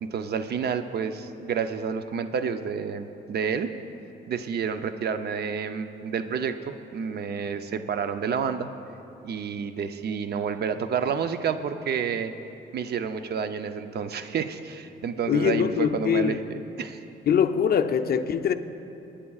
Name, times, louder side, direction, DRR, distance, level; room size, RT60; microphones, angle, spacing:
voice 1, 0.0-3.7 4.3-8.7 9.2-12.3 12.7-17.0, right 6 dB, 55° right, 9 dB, 0.6 m, -29 dB
voice 2, 15.3-16.4 17.3-18.5, left 8 dB, 50° left, 8 dB, 0.6 m, -23 dB
24.0 x 10.0 x 2.4 m, 2.9 s
cardioid pair, 90°, 20 cm